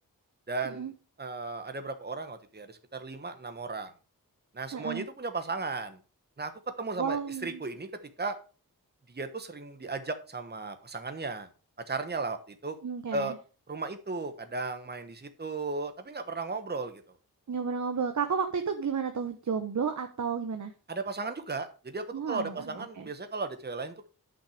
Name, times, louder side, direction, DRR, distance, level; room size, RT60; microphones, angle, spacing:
voice 1, 0.5-0.9 1.2-3.9 4.5-6.0 6.4-6.5 6.8-7.9 8.2-8.4 9.1-11.5 11.9-12.8 13.1-13.3 13.7-17.0 20.9-24.1, right 3 dB, 30° right, 9 dB, 1.2 m, -35 dB
voice 2, 4.7-5.1 7.0-7.6 12.8-13.3 17.5-20.7 22.1-23.1, right 6 dB, 55° right, 6 dB, 1.0 m, -32 dB
8.9 x 6.0 x 5.0 m, 0.34 s
wide cardioid pair, 65°, 36 cm